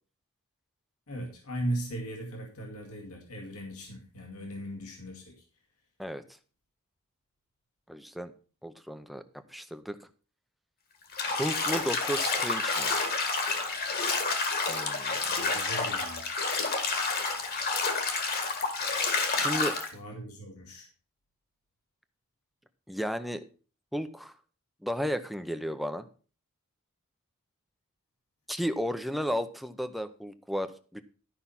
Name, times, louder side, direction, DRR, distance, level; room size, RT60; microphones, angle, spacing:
voice 1, 1.1-5.4 15.3-16.2 19.9-20.9, right 1 dB, 75° left, 1 dB, 2.3 m, -38 dB
voice 2, 7.9-8.3 8.6-9.2 9.5-10.0 11.3-12.9 14.7-15.2 19.3-19.8 22.9-23.4 23.9-24.3 24.8-26.1 28.5-31.0, equal, ahead, 9 dB, 0.6 m, -33 dB
Bathtub (filling or washing), 11.1-19.9, left 4 dB, 45° left, 1.8 m, -29 dB
12.0 x 5.7 x 5.7 m, 0.38 s
head